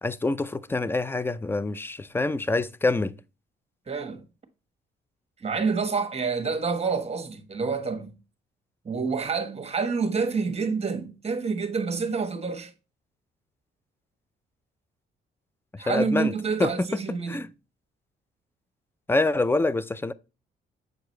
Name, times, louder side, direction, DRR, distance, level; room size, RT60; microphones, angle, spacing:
voice 1, 0.0-3.1 15.7-16.3 16.6-16.9 17.3-17.5 19.1-20.1, left 2 dB, 10° left, 0.4 m, -26 dB
voice 2, 3.9-4.2 5.4-8.1 8.8-12.7 15.8-17.4, right 5 dB, 30° right, 1.4 m, -28 dB
7.8 x 4.7 x 3.1 m
cardioid pair, 90°, 20 cm